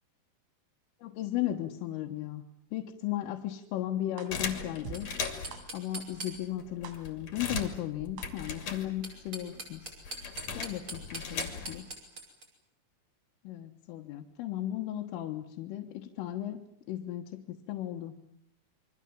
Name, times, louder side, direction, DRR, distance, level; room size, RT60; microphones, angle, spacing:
voice 1, 1.0-2.4 2.7-5.1 5.7-9.9 10.5-11.8 13.5-16.6 16.9-18.1, left 13 dB, 85° left, 1 dB, 3.9 m, -36 dB
sound 1, 4.2-4.3 4.8-5.0 5.5-5.6 6.2-6.3 6.8-6.9 7.5-7.6 8.2-8.3, right 9 dB, 85° right, 5.4 m, -41 dB
sound 2, 4.3-5.7 6.3-6.4 6.6-9.3 9.5-11.9, left 6 dB, 40° left, 3.1 m, -38 dB
sound 3, 4.9-6.7 8.8-12.5, right 2 dB, 25° right, 6.1 m, -42 dB
28.5 x 24.0 x 7.4 m, 0.71 s
omnidirectional pair, 5.8 m